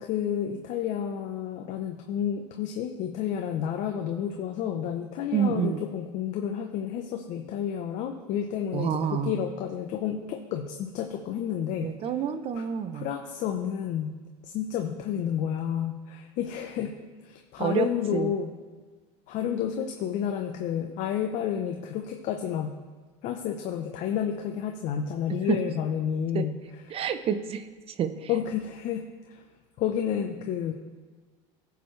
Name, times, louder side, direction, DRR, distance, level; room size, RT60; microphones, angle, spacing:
voice 1, 0.0-11.9 12.5-12.6 12.9-14.2 14.4-16.9 17.2-18.5 19.3-22.8 23.2-26.6 26.9-27.0 28.3-29.4 29.8-30.7, left 9 dB, 55° left, 4 dB, 0.8 m, -30 dB
voice 2, 5.3-5.8 8.7-9.4 11.8-13.1 17.6-18.3 25.5-25.6 26.3-26.5 26.9-27.6 28.0-28.3, right 8 dB, 40° right, 11 dB, 0.7 m, -28 dB
16.0 x 6.9 x 3.3 m, 1.4 s
supercardioid pair, 115°, 16 cm